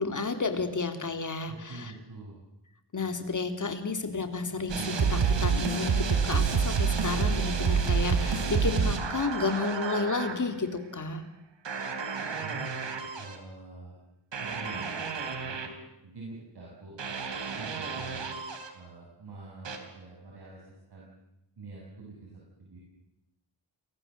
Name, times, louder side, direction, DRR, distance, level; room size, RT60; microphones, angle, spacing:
voice 1, 0.0-1.9 2.9-11.2, left 4 dB, 45° left, 7 dB, 3.4 m, -31 dB
voice 2, 1.5-2.4 12.3-12.7 13.2-14.0 14.3-15.6 16.0-17.0 17.6-18.3 18.7-21.2 21.6-22.8, right 3 dB, 65° right, -3 dB, 7.3 m, -46 dB
sound 1, 4.7-10.4 11.7-13.4 14.3-15.7 17.0-18.7 19.6-19.8, right 5 dB, 85° right, 3.6 m, -29 dB
29.5 x 23.0 x 7.8 m, 0.87 s
wide cardioid pair, 115°, 43 cm